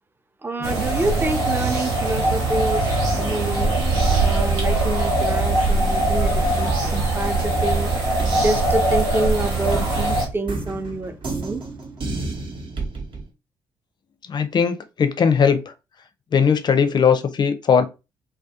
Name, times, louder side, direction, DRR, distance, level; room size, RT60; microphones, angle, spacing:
voice 1, 0.4-3.7 4.2-7.9 8.3-11.6, right 2 dB, 20° right, 0.5 m, -27 dB
sound 1, 0.6-10.3, right 2 dB, 75° right, 0.7 m, -21 dB
sound 2, 6.4-7.8 8.2-13.3, right 3 dB, 45° right, 0.8 m, -31 dB
voice 2, 14.3-15.6 16.3-17.9, left 6 dB, 40° left, 0.5 m, -18 dB
2.3 x 2.1 x 2.7 m
hypercardioid pair, 45°, 11 cm